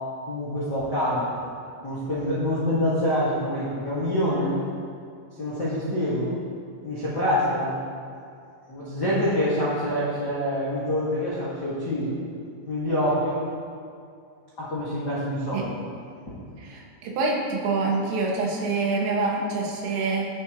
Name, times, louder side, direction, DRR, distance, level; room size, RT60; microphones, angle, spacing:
voice 1, 0.2-1.3 1.8-4.5 5.4-6.4 6.8-7.8 8.7-12.1 12.7-13.4 14.6-15.7, left 1 dB, 85° left, -10 dB, 0.9 m, -26 dB
voice 2, 16.6-20.3, right 3 dB, 90° right, -2 dB, 4.4 m, -26 dB
21.5 x 8.0 x 3.1 m, 2.4 s
omnidirectional pair, 5.6 m